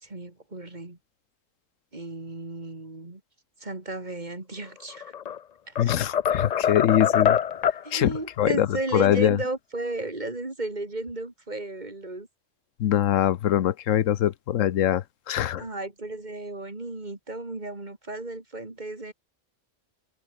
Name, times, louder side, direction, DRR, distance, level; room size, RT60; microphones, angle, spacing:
voice 1, 0.0-1.0 1.9-3.2 3.6-5.1 5.7-5.9 7.8-12.3 15.6-19.1, right 2 dB, 35° right, 3.0 m, -34 dB
sound 1, 4.9-5.4 5.8-7.9, left 8 dB, 55° left, 0.4 m, -24 dB
voice 2, 5.8-7.4 7.7-9.4 12.8-15.6, left 11 dB, 85° left, 1.1 m, -23 dB
omnidirectional pair, 1.3 m